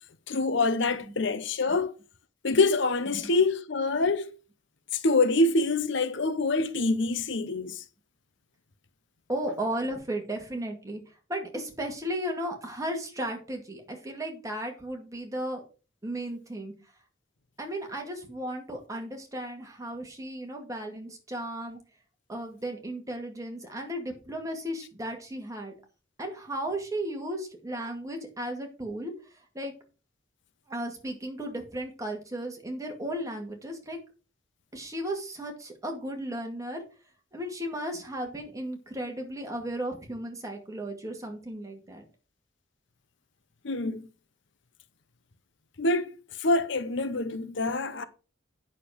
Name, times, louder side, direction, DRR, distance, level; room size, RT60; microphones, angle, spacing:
voice 1, 0.3-1.9 2.4-4.3 4.9-7.8 43.6-44.0 45.8-48.0, left 3 dB, 60° left, 0.8 m, -26 dB
voice 2, 9.3-15.6 16.0-16.7 17.6-21.8 22.3-25.7 26.2-29.1 29.5-29.7 30.7-34.0 34.7-36.8 37.3-42.0, right 1 dB, 15° right, 2.2 m, -35 dB
8.8 x 6.7 x 5.0 m
head